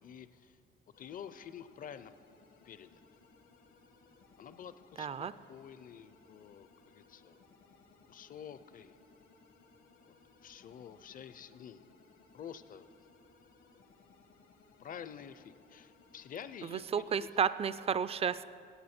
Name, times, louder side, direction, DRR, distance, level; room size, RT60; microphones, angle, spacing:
voice 1, 0.0-0.6 1.0-2.1 2.6-3.0 4.4-7.4 8.0-9.0 10.0-10.1 10.4-12.0 12.3-12.9 14.8-17.3, left 8 dB, 45° left, 13 dB, 0.5 m, -49 dB
sound 1, 0.9-17.0, left 4 dB, 80° left, 1.2 m, -63 dB
voice 2, 5.0-5.3 16.7-18.4, right 7 dB, 30° right, 15 dB, 0.4 m, -32 dB
16.0 x 8.3 x 4.3 m, 2.4 s
cardioid pair, 90°, 20 cm